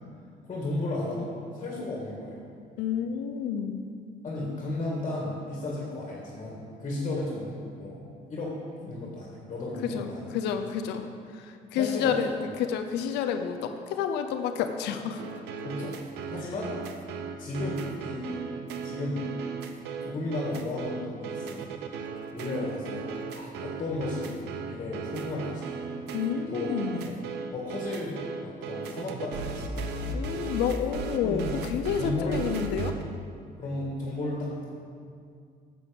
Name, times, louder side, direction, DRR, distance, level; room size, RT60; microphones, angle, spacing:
voice 1, 0.5-2.4 4.2-8.0 8.3-10.3 11.7-12.2 12.4-12.5 15.6-16.0 16.3-16.8 17.4-18.5 18.8-19.3 20.0-21.8 22.3-23.1 23.3-24.4 24.6-25.8 26.5-26.7 27.0-27.2 27.5-30.1 31.2-31.5 32.0-32.4 33.6-34.6, left 2 dB, 40° left, -3 dB, 2.4 m, -34 dB
voice 2, 2.8-3.9 9.8-12.3 12.6-15.2 26.1-27.2 30.1-32.9, left 8 dB, 85° left, 7 dB, 0.7 m, -30 dB
sound 1, 15.2-33.0, right 4 dB, 80° right, 0.8 m, -36 dB
10.5 x 7.8 x 5.4 m, 2.3 s
cardioid pair, 110°, 17 cm